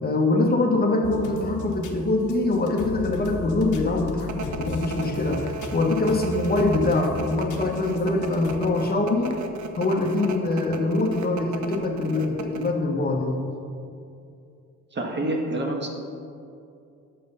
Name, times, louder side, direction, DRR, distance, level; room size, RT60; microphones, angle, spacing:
voice 1, 0.0-9.3 9.8-13.5, left 2 dB, 30° left, 1 dB, 1.2 m, -24 dB
sound 1, 1.0-8.6, left 2 dB, 75° left, 1.1 m, -37 dB
sound 2, 4.3-12.7, right 3 dB, 65° right, 0.9 m, -35 dB
voice 2, 14.9-15.9, right 1 dB, 35° right, 1 dB, 1.4 m, -27 dB
7.6 x 6.7 x 5.6 m, 2.5 s
cardioid pair, 90°, 30 cm